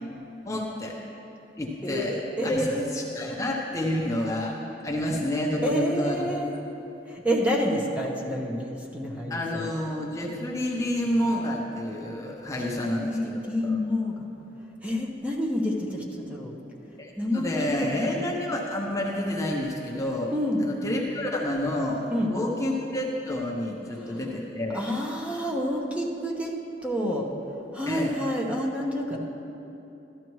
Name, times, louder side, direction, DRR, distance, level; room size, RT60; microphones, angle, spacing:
voice 1, 0.4-1.0 1.6-2.1 2.4-4.5 4.8-6.3 9.3-13.8 17.0-20.3 20.6-24.8 27.9-28.1 29.1-29.2, left 1 dB, 20° left, -2 dB, 0.9 m, -29 dB
voice 2, 1.8-2.9 5.6-6.5 7.1-9.6 13.0-14.3 14.8-16.5 17.2-18.2 20.3-20.6 22.1-22.3 24.0-24.1 24.7-26.5 26.8-27.3 27.7-29.2, equal, 10° right, -2 dB, 1.0 m, -28 dB
13.5 x 12.0 x 3.1 m, 3.0 s
head